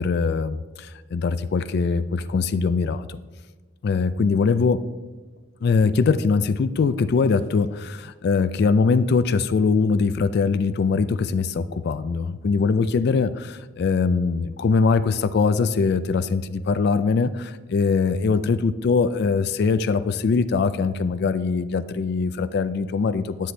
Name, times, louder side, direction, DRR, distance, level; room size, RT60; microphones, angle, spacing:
voice 1, 0.0-3.2 3.8-4.8 5.6-23.5, left 4 dB, 55° left, 13 dB, 0.3 m, -22 dB
10.5 x 7.6 x 3.3 m, 1.3 s
head